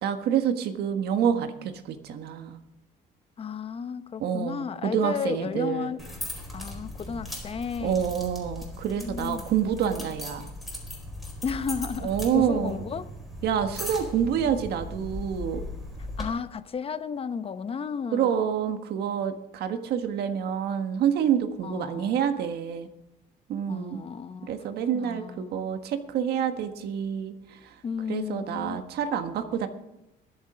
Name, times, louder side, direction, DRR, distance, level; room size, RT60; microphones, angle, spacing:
voice 1, 0.0-2.6 4.2-5.9 7.8-10.5 12.0-12.8 13.4-15.6 18.1-22.9 23.5-24.0 24.5-27.7 28.1-29.7, right 8 dB, 70° right, 1.5 m, -27 dB
voice 2, 3.4-6.0 6.5-8.1 8.9-9.5 11.4-13.1 16.2-18.3 21.6-22.1 23.7-24.6 24.9-25.8 27.8-28.8, left 6 dB, 35° left, 0.9 m, -33 dB
sound 1, 6.0-16.2, left 1 dB, ahead, 4.3 m, -38 dB
22.0 x 7.4 x 5.0 m
cardioid pair, 110°, 17 cm